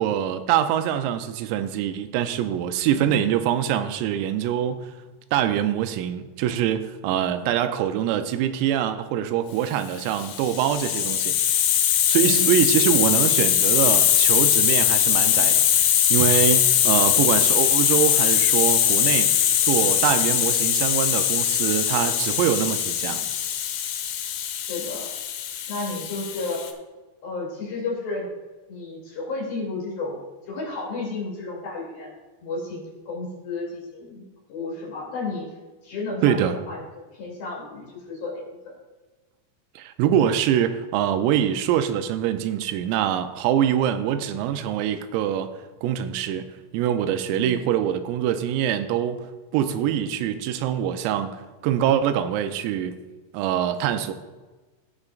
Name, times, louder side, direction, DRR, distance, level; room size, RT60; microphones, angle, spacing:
voice 1, 0.0-4.9 5.3-11.4 12.1-15.7 16.1-23.3 36.2-36.6 39.8-45.5 45.8-46.5 46.7-49.2 49.5-51.4 51.6-53.0 53.3-54.1, right 10 dB, 90° right, 9 dB, 3.3 m, -24 dB
voice 2, 2.9-3.2 7.2-7.5 12.2-12.5 23.0-23.1 24.5-25.1 25.7-26.6 27.2-28.3 28.7-30.2 30.5-32.1 32.4-34.2 34.5-35.5 35.8-38.8 47.3-47.6, left 3 dB, 50° left, -4 dB, 3.9 m, -32 dB
Hiss, 10.1-26.7, left 10 dB, 85° left, 2.5 m, -21 dB
17.0 x 6.4 x 2.4 m, 1.3 s
omnidirectional pair, 5.9 m